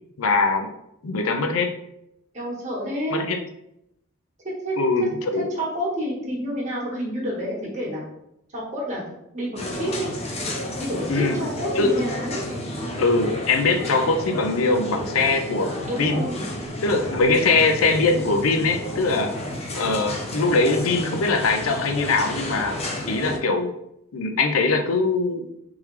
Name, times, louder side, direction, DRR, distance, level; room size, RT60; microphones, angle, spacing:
voice 1, 0.2-0.7 1.0-1.7 3.1-3.4 4.8-5.1 5.3-5.5 11.1-11.4 11.8-11.9 13.0-16.2 16.8-19.3 19.7-22.8 23.1-23.7 24.1-25.4, left 3 dB, 85° left, 6 dB, 0.5 m, -22 dB
voice 2, 2.3-3.2 4.4-4.8 5.3-8.0 8.5-9.0 9.3-10.1 10.8-12.5 15.9-16.4 20.2-20.3, equal, 35° right, -4 dB, 1.3 m, -29 dB
sound 1, 9.6-23.4, left 1 dB, 30° left, 0.5 m, -32 dB
3.5 x 3.2 x 3.2 m, 0.79 s
head